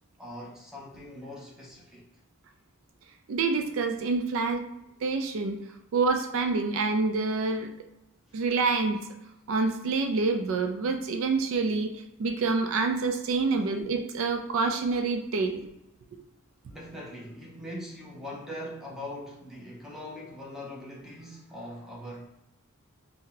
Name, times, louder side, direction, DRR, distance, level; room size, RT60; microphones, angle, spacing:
voice 1, 0.2-2.1 13.5-13.6 16.7-22.3, left 1 dB, ahead, 0.7 m, -41 dB
voice 2, 3.3-4.6 5.0-5.6 5.9-7.7 8.3-9.0 9.5-15.6, right 4 dB, 65° right, 0.3 m, -27 dB
2.6 x 2.1 x 3.8 m
head